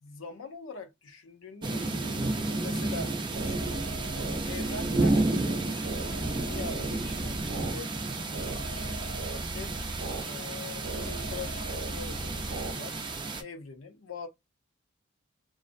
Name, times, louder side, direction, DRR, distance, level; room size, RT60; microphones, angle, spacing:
voice 1, 0.0-3.1 3.4-3.8 4.5-9.0 9.5-9.8 10.2-13.0 13.4-14.3, left 4 dB, 85° left, 0.6 m, -43 dB
sound 1, 1.6-13.4, right 2 dB, 25° right, 0.4 m, -32 dB
sound 2, 3.0-12.7, right 2 dB, 90° right, 0.7 m, -38 dB
2.6 x 2.0 x 2.5 m
head